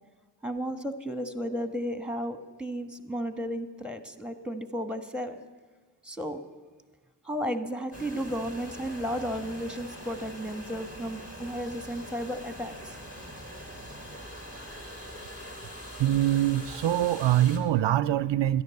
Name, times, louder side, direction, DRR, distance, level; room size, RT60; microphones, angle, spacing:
voice 1, 0.4-5.4 6.0-6.4 7.2-13.0, equal, ahead, 9 dB, 1.4 m, -33 dB
sound 1, 7.9-17.6, equal, 35° left, 3.2 m, -43 dB
voice 2, 16.0-18.6, right 12 dB, 75° right, 16 dB, 0.5 m, -24 dB
13.0 x 10.5 x 8.4 m, 1.5 s
cardioid pair, 50°, 44 cm